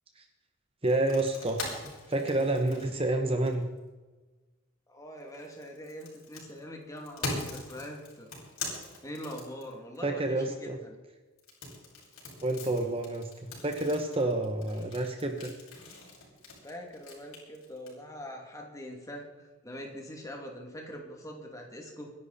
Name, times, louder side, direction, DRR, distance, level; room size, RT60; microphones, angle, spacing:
sound 1, 0.8-3.8 5.2-10.0 11.4-17.9, left 2 dB, 70° left, 6.2 m, -41 dB
voice 1, 0.8-3.6 10.0-10.8 12.4-13.3 13.6-15.5, right 2 dB, 25° right, 4 dB, 1.2 m, -29 dB
voice 2, 4.9-8.3 9.0-11.0 16.6-22.1, equal, 15° left, 1 dB, 2.5 m, -43 dB
25.5 x 11.0 x 4.2 m, 1.2 s
head